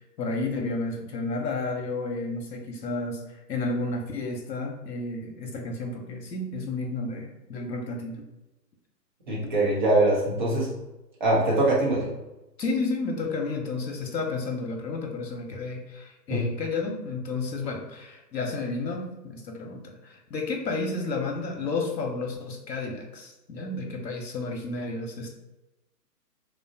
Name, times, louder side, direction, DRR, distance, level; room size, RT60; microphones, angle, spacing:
voice 1, 0.2-8.2 12.6-25.3, left 3 dB, 85° left, 2 dB, 0.7 m, -31 dB
voice 2, 9.3-10.7 11.2-12.1 16.3-16.5, right 2 dB, 30° right, -4 dB, 0.6 m, -23 dB
2.8 x 2.0 x 2.6 m, 0.99 s
figure-of-eight pair, 140°, 50 cm